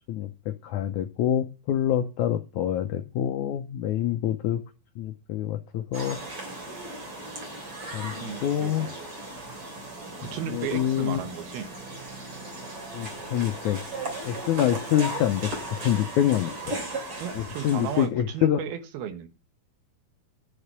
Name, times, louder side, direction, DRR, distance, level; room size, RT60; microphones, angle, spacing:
voice 1, 0.1-4.6 5.0-6.2 7.9-8.1 8.4-8.9 10.2-11.2 12.9-13.8 14.2-15.5 15.8-16.8 17.4-18.6, left 11 dB, 90° left, 1.7 m, -26 dB
sound 1, 5.9-18.1, right 2 dB, 35° right, 3.7 m, -37 dB
voice 2, 8.1-9.0 10.2-11.7 17.2-19.3, right 8 dB, 75° right, 3.1 m, -35 dB
11.0 x 6.7 x 8.8 m
omnidirectional pair, 4.4 m